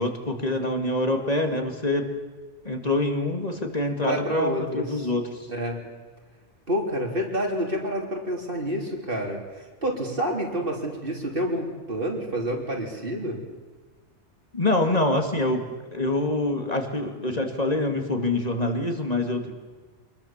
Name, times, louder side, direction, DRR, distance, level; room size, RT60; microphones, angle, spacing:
voice 1, 0.0-2.1 2.6-5.5 14.5-19.5, left 2 dB, 35° left, 4 dB, 2.4 m, -25 dB
voice 2, 4.0-4.8 5.5-5.8 6.7-13.4, right 1 dB, 50° right, 0 dB, 3.7 m, -28 dB
26.0 x 20.5 x 7.4 m, 1.4 s
omnidirectional pair, 1.2 m